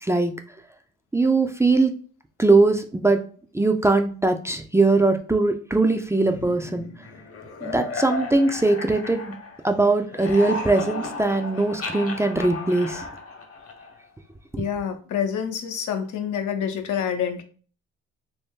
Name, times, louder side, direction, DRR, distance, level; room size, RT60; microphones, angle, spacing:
voice 1, 1.1-1.9 2.4-3.2 3.5-6.9 7.6-9.3 9.6-13.1, right 3 dB, 10° right, 5 dB, 0.4 m, -21 dB
sound 1, 6.2-9.7 10.0-14.1, left 3 dB, 50° left, 1.0 m, -34 dB
voice 2, 14.6-17.4, left 8 dB, 80° left, 6 dB, 0.7 m, -27 dB
3.0 x 2.7 x 3.5 m, 0.41 s
cardioid pair, 90°, 30 cm